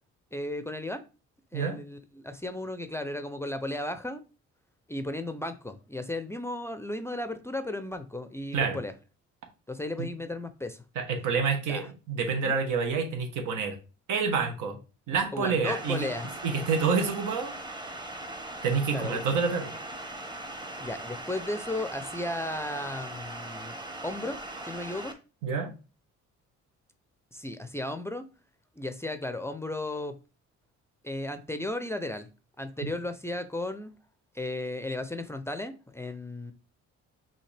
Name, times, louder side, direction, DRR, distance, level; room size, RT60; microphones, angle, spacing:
voice 1, 0.3-1.0 1.5-4.2 4.9-8.9 9.7-10.8 11.7-11.9 12.4-12.6 15.3-16.3 18.9-19.2 20.8-24.4 24.6-25.1 27.3-28.2 28.8-30.2 31.0-32.3 32.6-33.9 34.3-36.5, left 1 dB, 10° left, 0.4 m, -35 dB
voice 2, 10.9-13.8 14.1-14.8 15.1-16.0 16.4-17.5 18.6-19.7 25.4-25.7, right 5 dB, 85° right, 1.1 m, -28 dB
sound 1, 15.7-25.1, right 1 dB, 15° right, 0.8 m, -40 dB
5.7 x 2.8 x 3.3 m
cardioid pair, 90°, 30 cm